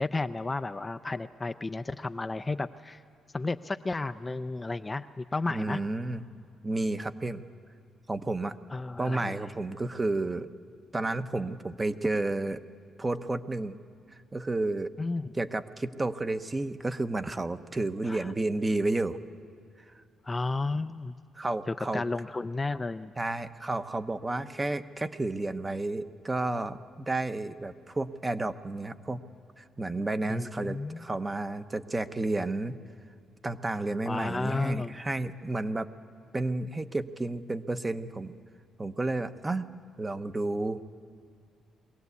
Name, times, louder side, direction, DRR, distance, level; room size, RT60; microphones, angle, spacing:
voice 1, 0.0-3.0 3.3-5.8 8.7-9.5 15.0-15.3 18.1-18.3 20.2-21.1 21.7-23.1 30.3-31.0 34.1-35.0, left 3 dB, 20° left, 10 dB, 0.4 m, -33 dB
voice 2, 5.5-6.2 6.6-7.4 8.1-8.6 9.0-10.5 10.9-12.6 13.0-13.8 14.3-14.9 15.3-19.2 21.4-22.0 23.2-29.2 29.6-32.8 33.4-35.9 36.3-38.4 38.8-39.7 40.0-40.8, right 2 dB, 20° right, 10 dB, 0.8 m, -31 dB
22.5 x 16.5 x 8.2 m, 2.3 s
cardioid pair, 90°, 0 cm